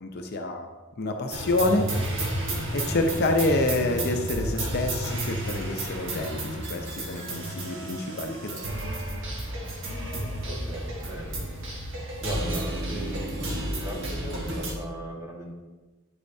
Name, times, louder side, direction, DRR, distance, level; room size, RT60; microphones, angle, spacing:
voice 1, 0.0-1.9 2.7-8.6, left 2 dB, 50° left, 4 dB, 0.6 m, -27 dB
sound 1, 1.3-14.7, right 1 dB, 60° right, 1.5 m, -32 dB
voice 2, 10.4-15.5, equal, 15° right, -2 dB, 1.5 m, -38 dB
9.0 x 8.4 x 2.7 m, 1.2 s
head